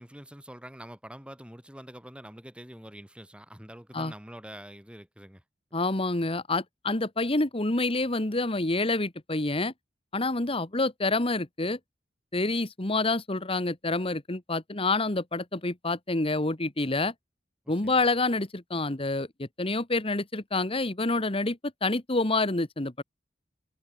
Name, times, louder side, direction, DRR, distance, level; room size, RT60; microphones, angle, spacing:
voice 1, 0.0-5.4 17.6-18.0, equal, 5° right, 4.1 m, -46 dB
voice 2, 5.7-9.7 10.1-11.8 12.3-17.1 17.7-23.0, left 2 dB, 30° left, 1.7 m, -28 dB
head